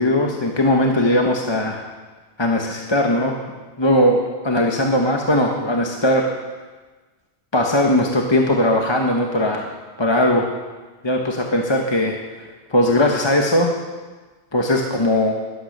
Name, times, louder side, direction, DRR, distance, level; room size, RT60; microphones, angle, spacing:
voice 1, 0.0-1.8 2.4-6.3 7.5-9.7 10.0-10.5 11.0-12.2 12.7-13.7 14.5-15.3, left 1 dB, 25° left, 1 dB, 1.1 m, -19 dB
12.0 x 11.5 x 6.6 m, 1.3 s
omnidirectional pair, 1.1 m